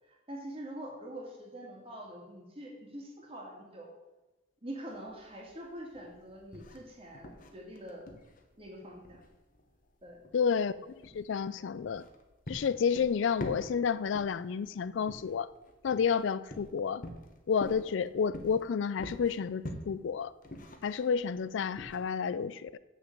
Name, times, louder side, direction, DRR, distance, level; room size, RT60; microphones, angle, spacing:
voice 1, 0.1-3.9 4.6-8.0 8.6-9.2 10.0-10.2, right 1 dB, 30° right, -1 dB, 2.4 m, -45 dB
sound 1, 4.9-22.0, left 1 dB, 40° left, 1.1 m, -46 dB
voice 2, 10.3-12.0 12.5-15.5 15.8-17.0 17.5-20.3 20.8-22.8, left 6 dB, 65° left, 16 dB, 0.4 m, -30 dB
7.6 x 6.7 x 7.9 m, 1.1 s
head